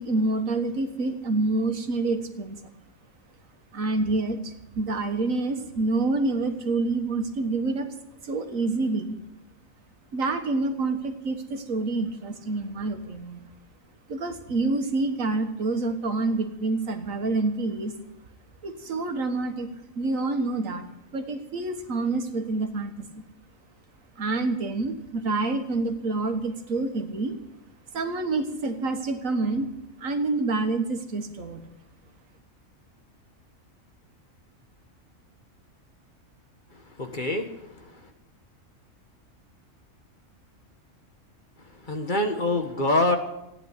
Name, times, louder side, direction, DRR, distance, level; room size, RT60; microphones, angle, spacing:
voice 1, 0.0-2.6 3.7-7.9 8.2-9.2 10.1-13.4 14.1-17.9 18.6-20.9 21.1-23.2 24.2-27.4 27.9-29.7 30.0-31.7, right 3 dB, 85° right, 6 dB, 1.8 m, -27 dB
voice 2, 37.0-37.5 41.9-43.2, left 2 dB, 40° left, 5 dB, 1.6 m, -24 dB
15.5 x 9.9 x 8.2 m, 0.90 s
omnidirectional pair, 1.4 m